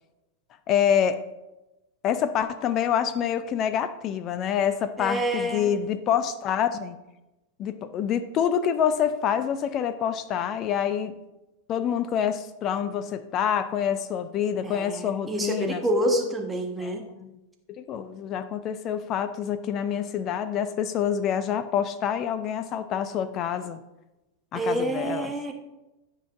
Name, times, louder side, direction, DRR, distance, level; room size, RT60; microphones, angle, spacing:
voice 1, 0.7-1.2 2.0-7.0 7.6-11.1 11.7-15.8 16.8-17.4 17.7-23.8 24.5-25.3, left 8 dB, 35° left, 12 dB, 0.4 m, -27 dB
voice 2, 5.0-5.7 14.6-17.0 24.5-25.5, right 1 dB, 10° right, 2 dB, 1.3 m, -27 dB
15.0 x 5.6 x 2.6 m, 1.0 s
figure-of-eight pair, 90°, 0 cm